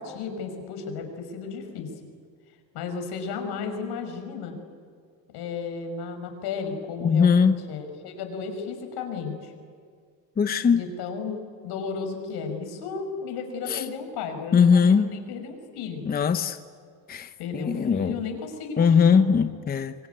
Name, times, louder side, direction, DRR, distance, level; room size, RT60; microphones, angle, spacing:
voice 1, 0.0-1.9 2.7-4.5 5.3-9.5 10.7-11.4 11.6-16.1 17.4-19.3, left 5 dB, 75° left, 5.6 m, -34 dB
voice 2, 7.0-7.6 10.4-10.8 13.7-13.8 14.5-15.1 16.1-16.6 17.1-18.1 18.8-20.1, left 6 dB, 25° left, 0.8 m, -20 dB
25.5 x 24.0 x 9.5 m
cardioid pair, 140°, 40 cm